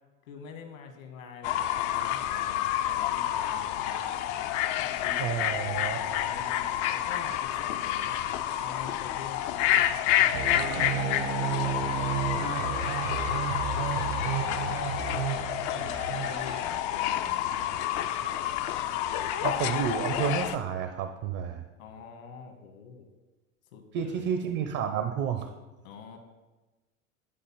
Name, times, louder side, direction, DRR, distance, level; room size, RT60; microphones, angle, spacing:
voice 1, 0.2-4.1 4.8-8.1 8.6-13.6 14.2-17.9 21.8-23.1 23.7-24.3 25.8-26.2, left 5 dB, 70° left, 5 dB, 1.8 m, -46 dB
Fowl / Bird, 1.4-20.6, left 12 dB, 45° left, 0.6 m, -29 dB
voice 2, 5.2-6.0 19.4-21.6 23.9-25.5, right 8 dB, 45° right, 7 dB, 0.8 m, -30 dB
sound 1, 10.3-16.6, right 7 dB, 70° right, 1.6 m, -32 dB
11.0 x 4.0 x 5.7 m, 1.2 s
hypercardioid pair, 85°, 42 cm